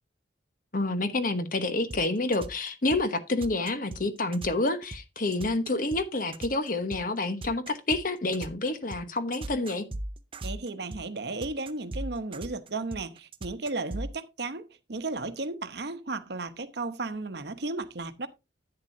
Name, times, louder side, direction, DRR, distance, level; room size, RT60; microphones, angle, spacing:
voice 1, 0.7-9.9, left 2 dB, 45° left, 1.1 m, -28 dB
sound 1, 1.9-14.1, right 2 dB, 30° right, 0.5 m, -38 dB
voice 2, 10.4-18.3, right 3 dB, 60° right, 0.9 m, -34 dB
10.5 x 8.9 x 2.7 m
head